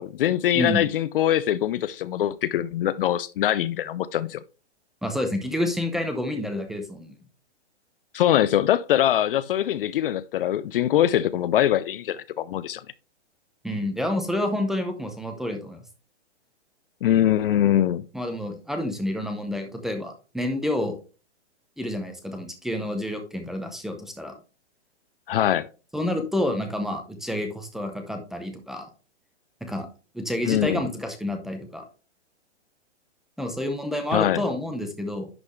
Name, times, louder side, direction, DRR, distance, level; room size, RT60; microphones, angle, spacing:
voice 1, 0.0-4.4 8.1-12.8 17.0-18.1 25.3-25.7 30.4-30.9 34.1-34.4, left 11 dB, 50° left, 0.5 m, -23 dB
voice 2, 0.5-0.8 5.0-7.1 13.6-15.8 18.1-21.0 21.8-24.3 25.9-28.9 29.6-29.9 30.1-31.8 33.4-35.3, left 1 dB, ahead, 0.7 m, -29 dB
10.5 x 4.2 x 3.2 m
hypercardioid pair, 140°, 35 cm